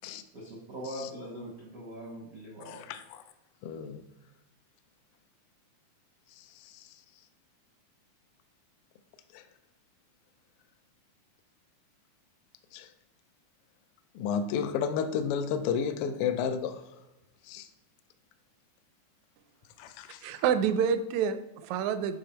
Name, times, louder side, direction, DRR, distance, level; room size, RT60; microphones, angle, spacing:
voice 1, 0.3-2.8, equal, 65° right, -3 dB, 0.8 m, -41 dB
voice 2, 2.7-3.2 3.6-4.0 6.4-6.9 9.3-9.4 12.7-12.9 14.1-16.8 17.5-17.7 19.8-20.2, left 7 dB, 85° left, 9 dB, 1.3 m, -32 dB
voice 3, 20.2-22.2, right 7 dB, 80° right, 10 dB, 1.8 m, -28 dB
7.8 x 5.0 x 4.4 m, 0.97 s
omnidirectional pair, 3.4 m